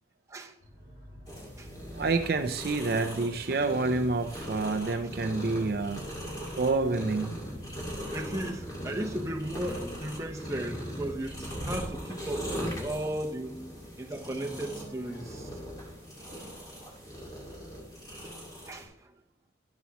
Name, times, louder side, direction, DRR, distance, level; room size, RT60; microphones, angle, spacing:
sound 1, 0.6-3.7 5.4-11.1 14.1-16.5, equal, 85° left, 2.7 m, -48 dB
sound 2, 1.3-18.9, equal, 20° left, 2.0 m, -40 dB
voice 1, 1.9-6.0 6.6-7.4, right 3 dB, 55° right, 0.5 m, -28 dB
voice 2, 8.1-13.6 14.0-15.5 18.7-19.1, right 1 dB, 15° right, 0.9 m, -36 dB
12.0 x 7.1 x 3.0 m
head